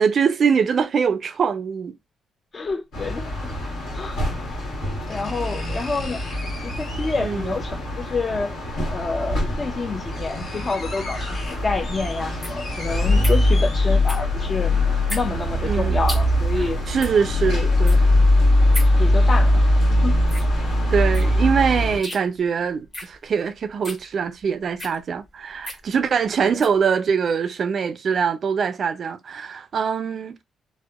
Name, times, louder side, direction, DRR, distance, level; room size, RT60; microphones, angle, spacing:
voice 1, 0.0-1.9 7.2-7.5 15.6-16.0 16.6-18.1 20.9-30.4, right 6 dB, 60° right, 0.3 m, -23 dB
voice 2, 2.5-3.5 3.9-4.2 5.1-6.2 6.6-8.6 8.9-14.8 15.1-16.8 19.0-20.2 26.4-26.6, left 4 dB, 40° left, 0.4 m, -28 dB
sound 1, 2.6-2.7 4.2-4.3 5.1-7.4 8.8-8.9 9.5-9.6 9.9-14.3 14.7-14.8, left 2 dB, 60° left, 0.9 m, -39 dB
sound 2, 2.9-22.0, left 1 dB, 80° left, 1.2 m, -21 dB
sound 3, 11.4-26.8, left 1 dB, 20° left, 0.9 m, -38 dB
2.7 x 2.0 x 2.2 m
supercardioid pair, 65°, 0 cm